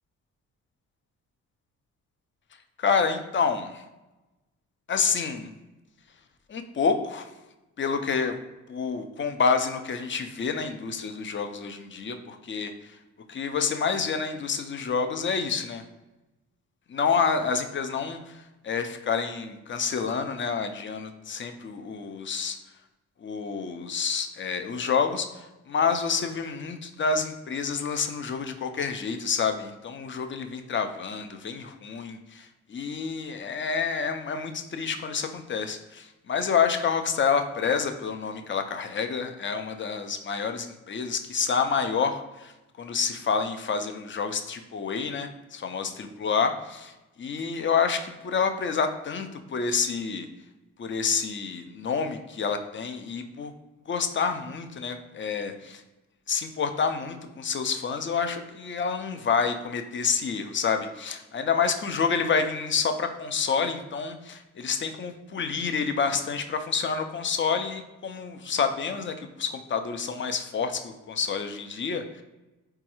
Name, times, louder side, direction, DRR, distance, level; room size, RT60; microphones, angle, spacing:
voice 1, 2.8-3.8 4.9-5.5 6.5-7.3 7.8-8.3 8.7-12.7 13.3-15.8 16.9-22.6 23.2-42.5 42.8-46.9 47.2-50.3 50.8-53.5 53.9-55.8 56.3-72.2, left 5 dB, 35° left, 7 dB, 0.4 m, -28 dB
3.8 x 2.3 x 2.9 m, 1.0 s
supercardioid pair, 60°, 35 cm